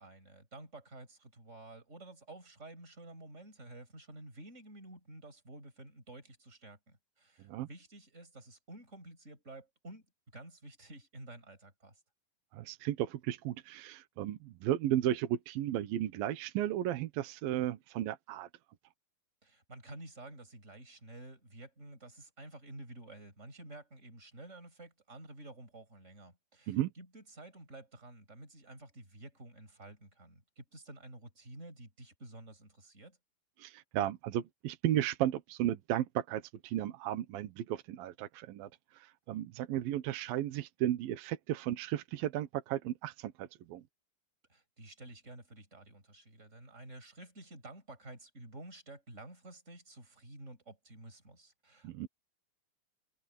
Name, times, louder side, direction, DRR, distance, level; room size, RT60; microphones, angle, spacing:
voice 1, 0.0-10.1 10.3-12.0 19.4-33.2 44.5-52.1, right 2 dB, 20° right, 7.2 m, -51 dB
voice 2, 12.5-18.5 26.7-26.9 33.6-38.7 39.0-43.8 51.8-52.1, right 12 dB, 75° right, 3.0 m, -34 dB
omnidirectional pair, 4.2 m